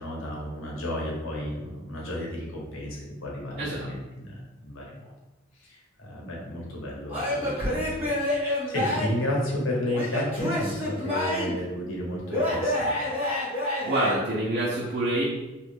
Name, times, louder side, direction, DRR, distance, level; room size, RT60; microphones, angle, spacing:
voice 1, 0.0-5.1 5.5-12.9, left 1 dB, 90° left, -3 dB, 1.0 m, -32 dB
Male speech man speaking / Yell / Laughter, 7.1-9.2 9.9-11.6 12.3-14.1, left 1 dB, 10° right, 1.5 m, -28 dB
voice 2, 13.8-15.2, right 1 dB, 45° right, -6 dB, 0.6 m, -26 dB
3.0 x 2.4 x 3.4 m, 1.1 s
head